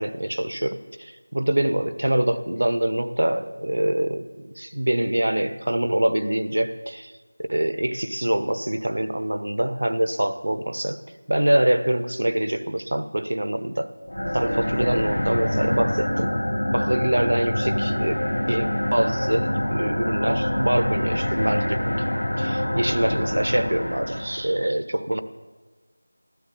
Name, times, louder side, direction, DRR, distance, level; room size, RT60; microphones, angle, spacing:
voice 1, 0.0-7.1 7.5-11.0 11.3-13.9 14.3-16.3 16.7-18.2 18.5-22.0 22.4-25.2, right 1 dB, 65° right, 11 dB, 1.2 m, -25 dB
sound 1, 14.1-24.5, left 1 dB, 80° left, 1.9 m, -25 dB
14.0 x 13.5 x 7.4 m, 1.3 s
figure-of-eight pair, 170°, 0 cm